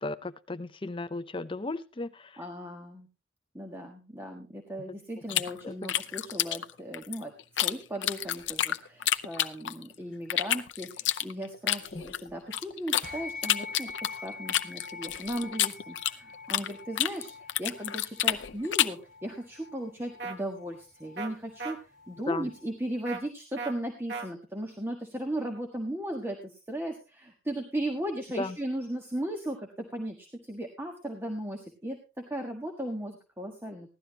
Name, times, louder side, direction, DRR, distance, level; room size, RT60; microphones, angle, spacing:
voice 1, 0.0-2.3 5.6-5.7 11.9-12.0 22.3-22.5 28.4-28.6, left 2 dB, 25° left, 12 dB, 0.6 m, -35 dB
voice 2, 2.4-3.1 3.5-7.3 7.6-33.9, right 1 dB, 15° right, 2 dB, 1.5 m, -37 dB
sound 1, 5.3-7.7 8.0-9.9 10.3-13.1 13.4-16.7 17.0-19.0, left 12 dB, 70° left, 0.6 m, -29 dB
sound 2, 13.0-22.7, left 4 dB, 50° right, 3.0 m, -45 dB
sound 3, 20.2-20.4 21.2-21.3 21.6-21.7 23.1-23.2 23.6-23.7 24.1-24.3, right 4 dB, 65° right, 2.0 m, -35 dB
16.5 x 12.0 x 3.0 m, 0.29 s
head